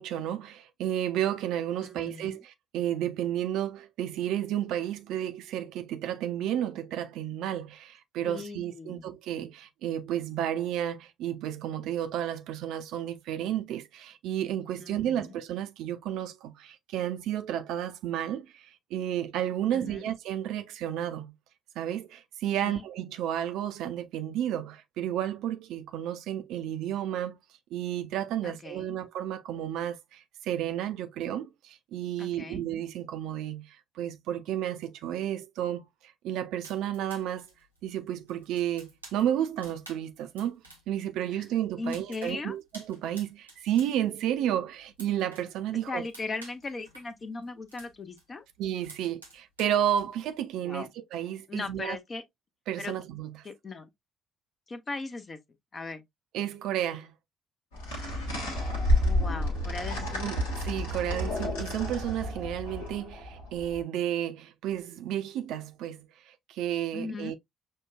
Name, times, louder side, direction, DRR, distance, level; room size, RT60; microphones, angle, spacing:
voice 1, 0.0-21.3 21.8-27.4 27.7-35.9 36.2-37.5 37.8-46.0 48.6-52.0 52.7-53.3 56.3-57.1 60.2-60.4 60.6-67.3, right 11 dB, 60° right, 0.4 m, -32 dB
voice 2, 1.8-2.4 8.2-9.1 14.8-15.4 19.7-20.1 22.6-22.8 28.4-29.0 32.2-32.6 41.3-41.5 41.8-42.6 45.9-48.5 50.6-50.9 51.5-52.2 52.8-52.9 53.4-53.9 54.7-55.4 55.7-56.0 59.0-60.3 66.9-67.3, left 3 dB, 35° left, 0.7 m, -38 dB
sound 1, 36.6-41.0 41.3-43.9 44.2-45.5 45.8-48.2 48.5-50.3, right 2 dB, 90° right, 0.8 m, -51 dB
sound 2, 57.7-63.8, left 1 dB, 75° left, 1.1 m, -30 dB
6.2 x 2.2 x 2.3 m
figure-of-eight pair, 45°, 0 cm